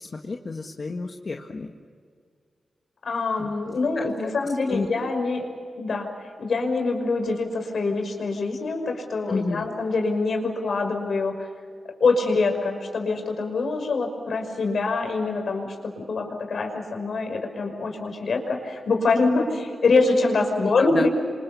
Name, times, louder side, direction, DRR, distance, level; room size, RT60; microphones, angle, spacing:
voice 1, 0.0-1.7 3.4-3.5 4.0-4.3 4.7-5.1 9.3-9.7 20.6-21.1, left 3 dB, 55° left, 3 dB, 1.8 m, -30 dB
voice 2, 3.0-5.5 5.8-6.1 6.4-11.5 11.8-21.1, left 3 dB, 70° left, 4 dB, 5.7 m, -25 dB
28.0 x 26.0 x 7.1 m, 2.1 s
cardioid pair, 50°, 0 cm